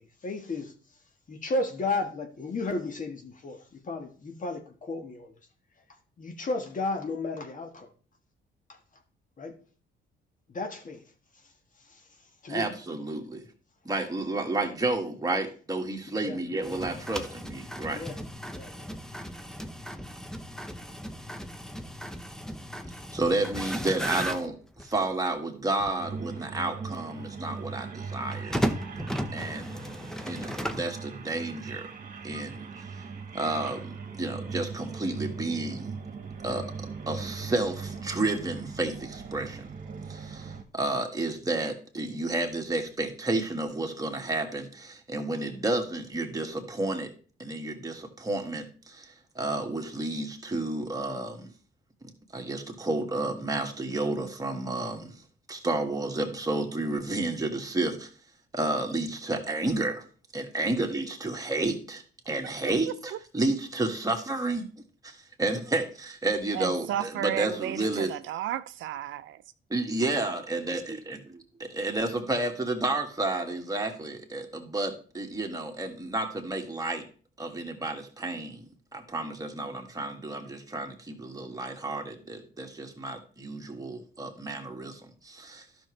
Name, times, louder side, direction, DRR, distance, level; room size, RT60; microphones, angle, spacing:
voice 1, 0.2-0.7 1.3-3.6 3.9-5.3 6.2-7.9 9.4-9.5 10.5-11.0 12.4-12.7 16.2-16.4 17.9-18.1 18.5-18.7, left 2 dB, 40° left, 1.4 m, -33 dB
voice 2, 12.5-13.4 13.9-18.0 23.1-24.6 24.8-28.6 29.3-29.8 30.3-31.9 32.2-32.7 33.0-33.1 33.3-36.0 36.4-36.7 37.1-39.7 40.1-47.1 47.4-51.5 52.3-55.2 55.5-58.1 58.5-60.0 60.3-64.7 65.0-68.1 69.7-77.0 77.4-78.7 78.9-85.6, right 2 dB, 20° right, 1.8 m, -31 dB
sound 1, 16.6-25.1 25.8-25.9 28.3-31.0, equal, 5° left, 0.7 m, -35 dB
sound 2, 26.0-40.6, right 5 dB, 45° right, 1.5 m, -40 dB
voice 3, 66.5-69.4, right 12 dB, 75° right, 0.5 m, -33 dB
11.5 x 6.1 x 3.2 m
cardioid pair, 90°, 20 cm